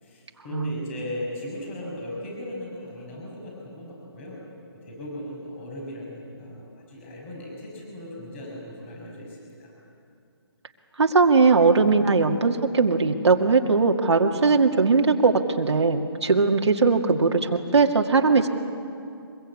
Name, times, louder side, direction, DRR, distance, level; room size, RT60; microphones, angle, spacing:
voice 1, 0.0-4.4 4.7-9.7, left 1 dB, 25° left, -1 dB, 6.5 m, -37 dB
voice 2, 0.5-0.8 11.0-18.5, right 4 dB, 85° right, 3 dB, 2.1 m, -20 dB
24.0 x 22.0 x 8.5 m, 2.5 s
hypercardioid pair, 170°, 14 cm